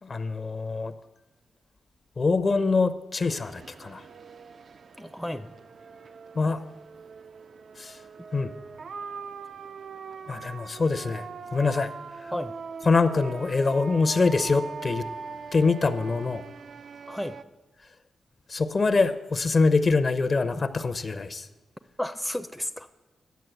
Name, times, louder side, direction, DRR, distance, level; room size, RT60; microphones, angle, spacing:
voice 1, 0.0-0.9 2.2-4.0 6.3-6.6 7.8-8.0 8.3-8.5 10.3-11.3 11.5-11.9 12.9-15.1 15.5-16.4 18.5-21.5, left 4 dB, 45° left, 12 dB, 0.6 m, -24 dB
sound 1, 3.2-17.4, right 5 dB, 65° right, 0.4 m, -41 dB
voice 2, 5.0-5.5 6.4-6.5 12.3-12.5 17.1-17.4 22.0-22.9, left 1 dB, 5° left, 9 dB, 0.5 m, -33 dB
9.3 x 6.6 x 7.8 m, 1.1 s
cardioid pair, 70°, 0 cm